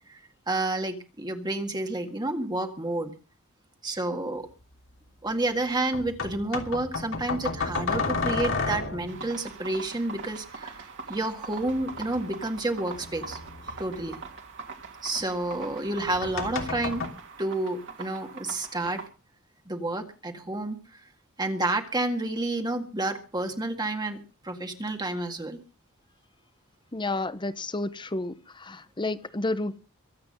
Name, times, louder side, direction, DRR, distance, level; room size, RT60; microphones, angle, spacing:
voice 1, 0.5-3.1 3.8-4.5 5.2-13.4 13.8-14.2 15.0-17.0 17.4-19.0 19.7-21.0 21.4-24.2 24.4-25.6, right 2 dB, 20° right, 1.9 m, -30 dB
sound 1, 4.5-4.6 5.9-9.2 11.6-14.3 15.9-17.1, left 4 dB, 65° left, 3.0 m, -32 dB
sound 2, 9.1-19.1, right 4 dB, 60° right, 2.9 m, -42 dB
voice 2, 26.9-29.8, left 2 dB, 20° left, 0.9 m, -31 dB
23.5 x 8.6 x 5.4 m
head